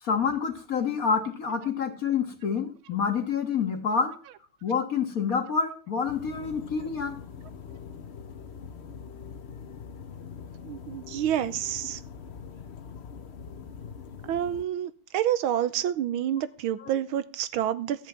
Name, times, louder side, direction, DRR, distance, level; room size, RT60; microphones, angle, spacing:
voice 1, 0.0-4.1 4.6-7.2 16.8-16.9, left 6 dB, 45° left, 6 dB, 1.8 m, -27 dB
sound 1, 6.0-14.6, left 6 dB, 65° left, 0.6 m, -43 dB
voice 2, 10.7-12.0 14.3-18.1, right 11 dB, 80° right, 15 dB, 1.5 m, -28 dB
13.0 x 5.5 x 8.6 m, 0.41 s
omnidirectional pair, 2.3 m